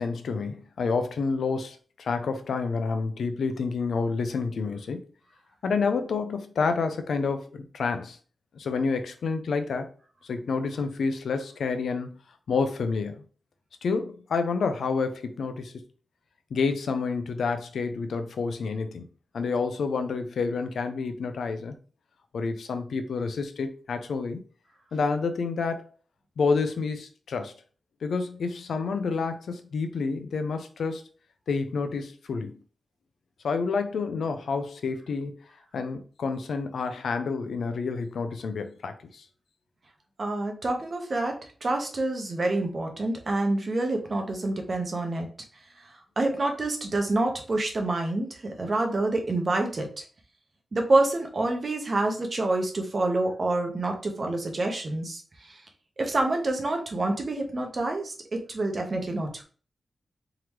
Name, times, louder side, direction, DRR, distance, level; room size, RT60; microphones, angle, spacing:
voice 1, 0.0-5.0 5.6-8.2 8.5-9.9 10.2-12.2 12.5-13.2 13.8-15.8 16.5-19.1 19.3-21.8 22.3-24.4 24.9-25.9 26.4-27.5 28.0-31.0 31.5-32.5 33.4-35.3 35.7-39.2, left 4 dB, 90° left, 0.5 m, -29 dB
voice 2, 40.2-41.4 41.6-45.3 46.2-49.9 50.7-55.2 55.5-55.6 56.0-59.4, right 2 dB, 50° right, 1.0 m, -27 dB
3.7 x 3.0 x 3.1 m
cardioid pair, 75°, 0 cm